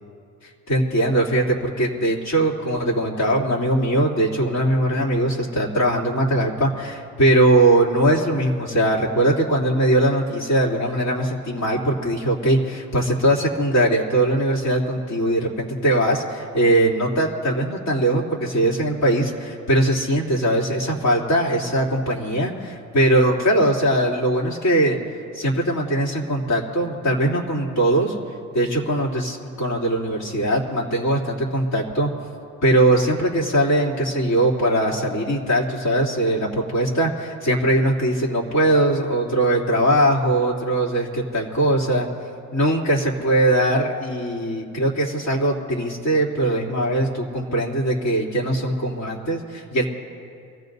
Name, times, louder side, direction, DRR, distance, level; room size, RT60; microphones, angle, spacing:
voice 1, 0.7-25.0 25.3-28.1 28.5-32.1 32.6-41.1 41.3-42.1 42.5-49.9, right 1 dB, 65° left, -4 dB, 3.3 m, -21 dB
27.0 x 15.5 x 2.7 m, 2.4 s
cardioid pair, 90°, 30 cm